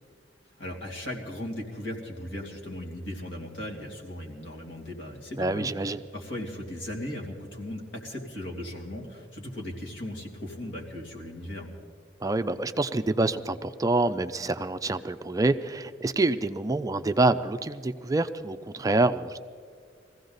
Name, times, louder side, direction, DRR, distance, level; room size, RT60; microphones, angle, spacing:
voice 1, 0.6-5.7 6.1-11.7, left 1 dB, 80° left, -1 dB, 2.7 m, -37 dB
voice 2, 5.4-6.0 12.2-19.4, right 2 dB, 20° right, 10 dB, 0.4 m, -26 dB
21.5 x 15.5 x 4.0 m, 2.1 s
head